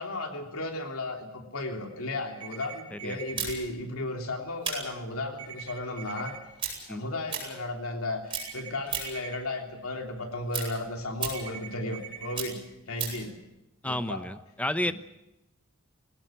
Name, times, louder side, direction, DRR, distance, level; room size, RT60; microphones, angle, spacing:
voice 1, 0.0-6.3 6.8-12.6 12.9-13.3 13.8-14.2 14.9-15.0, left 2 dB, 80° left, 3 dB, 3.3 m, -34 dB
sound 1, 2.4-3.4 5.4-6.4 8.4-9.4 11.3-12.3, right 8 dB, 75° right, 4.8 m, -43 dB
sound 2, 3.4-8.0 8.3-9.3 9.7-13.3, right 6 dB, 25° right, 7.6 m, -36 dB
voice 2, 13.8-14.9, left 1 dB, 5° left, 11 dB, 0.9 m, -31 dB
21.5 x 18.0 x 9.2 m, 0.90 s
head